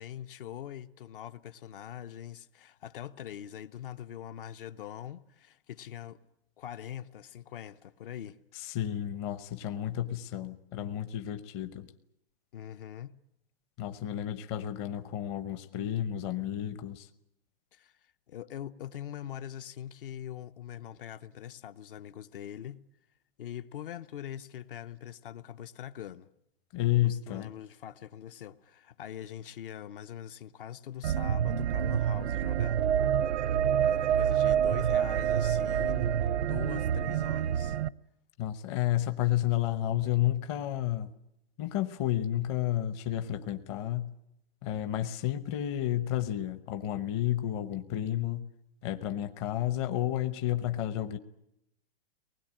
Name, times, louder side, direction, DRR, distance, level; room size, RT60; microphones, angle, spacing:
voice 1, 0.0-6.2 6.6-8.4 12.5-13.1 17.7-22.8 23.4-26.3 27.0-32.8 33.8-37.8, left 10 dB, 55° left, 0.9 m, -43 dB
voice 2, 8.5-11.9 13.8-17.1 26.7-27.5 38.4-41.1 41.6-44.1 44.6-48.4 48.8-51.2, left 12 dB, 25° left, 0.9 m, -31 dB
sound 1, 31.0-37.9, right 9 dB, 85° right, 0.8 m, -27 dB
24.0 x 20.0 x 8.8 m
hypercardioid pair, 170°, 32 cm